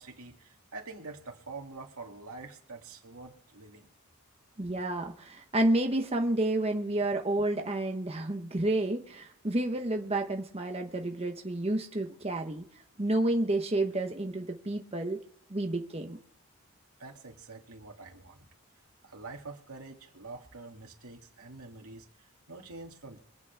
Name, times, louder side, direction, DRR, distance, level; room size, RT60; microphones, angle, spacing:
voice 1, 0.0-3.9 17.0-18.5 19.0-23.2, right 3 dB, 90° right, 2 dB, 2.6 m, -46 dB
voice 2, 4.6-12.6 13.0-15.2 15.5-16.2, right 1 dB, 30° right, 4 dB, 1.0 m, -30 dB
24.5 x 8.4 x 3.5 m, 0.67 s
head